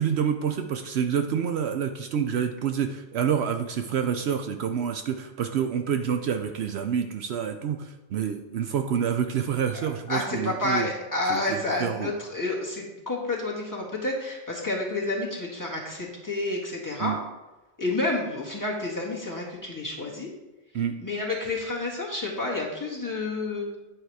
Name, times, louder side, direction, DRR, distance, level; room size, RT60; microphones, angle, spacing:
voice 1, 0.0-10.9 11.3-12.1 17.0-17.2 20.7-21.0, right 8 dB, 70° right, 7 dB, 0.8 m, -28 dB
voice 2, 10.1-17.2 17.8-20.3 21.0-23.7, left 2 dB, 15° left, -5 dB, 1.8 m, -29 dB
9.2 x 4.8 x 4.7 m, 1.1 s
omnidirectional pair, 1.2 m